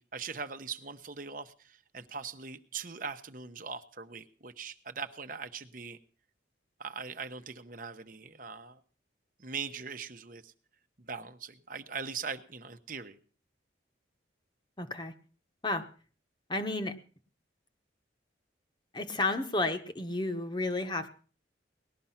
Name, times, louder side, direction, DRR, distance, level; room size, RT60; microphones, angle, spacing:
voice 1, 0.0-6.0 6.8-8.8 9.4-10.5 11.1-13.2, right 5 dB, 45° right, 8 dB, 1.0 m, -41 dB
voice 2, 14.8-15.1 15.6-15.9 16.5-17.0 18.9-21.1, left 2 dB, 25° left, 8 dB, 1.1 m, -32 dB
19.5 x 12.5 x 5.8 m, 0.42 s
head